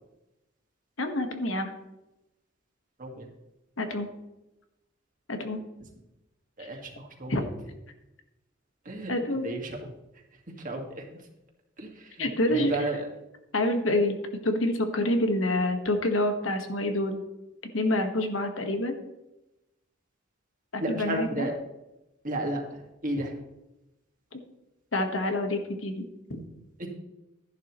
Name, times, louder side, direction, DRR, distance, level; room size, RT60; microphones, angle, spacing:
voice 1, 1.0-1.7 3.8-4.1 5.3-5.6 6.6-6.7 7.3-7.4 9.1-9.5 12.2-12.7 13.5-14.2 14.4-17.2 17.7-18.9 20.7-21.5 24.3-24.4 24.9-26.0 26.4-26.5, left 1 dB, 85° left, 6 dB, 1.4 m, -27 dB
voice 2, 6.6-7.5 8.9-9.1 9.4-9.8 10.6-11.0 11.8-13.1 20.8-21.6 22.2-23.3 26.8-26.9, right 1 dB, 45° right, 1 dB, 1.9 m, -33 dB
12.0 x 11.0 x 3.1 m, 0.95 s
head